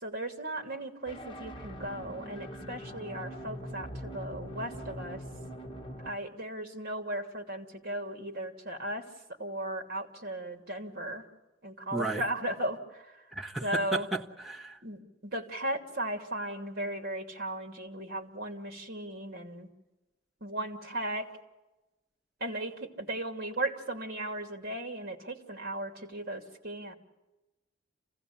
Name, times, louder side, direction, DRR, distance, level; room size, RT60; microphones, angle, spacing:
voice 1, 0.0-5.2 6.0-9.1 9.4-11.2 11.6-12.8 13.6-14.1 14.8-19.7 20.4-21.3 22.4-26.9, right 1 dB, 55° right, 5 dB, 2.8 m, -36 dB
sound 1, 1.1-6.1, equal, 25° left, 1.6 m, -42 dB
voice 2, 11.9-12.2 13.3-14.8, right 2 dB, ahead, -2 dB, 1.5 m, -34 dB
28.0 x 16.5 x 8.6 m, 1.1 s
head